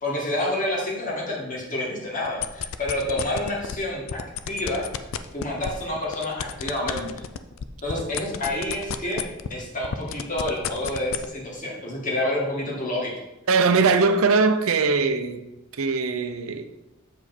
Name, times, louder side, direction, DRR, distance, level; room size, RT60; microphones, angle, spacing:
voice 1, 0.0-4.2 4.5-4.8 5.3-7.1 7.8-9.2 9.5-13.1, left 1 dB, 40° left, 2.0 m, -28 dB
sound 1, 2.3-3.8 4.1-9.6 9.8-11.3, left 7 dB, 70° left, 0.5 m, -31 dB
voice 2, 13.5-15.4 15.7-16.6, right 4 dB, 90° right, 0.6 m, -21 dB
7.8 x 5.0 x 4.3 m
head